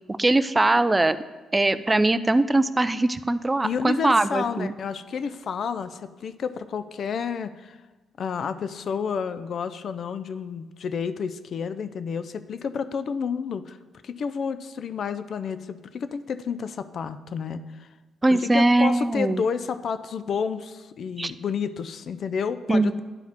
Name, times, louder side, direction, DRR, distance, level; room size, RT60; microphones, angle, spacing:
voice 1, 0.1-1.2 1.5-4.7 18.2-19.4 21.2-21.3 22.7-23.0, right 2 dB, 15° right, 14 dB, 0.3 m, -21 dB
voice 2, 3.6-7.8 8.2-13.8 14.0-17.9 18.3-23.0, left 6 dB, 55° left, 12 dB, 0.4 m, -30 dB
10.5 x 4.6 x 3.5 m, 1.2 s
cardioid pair, 90°, 0 cm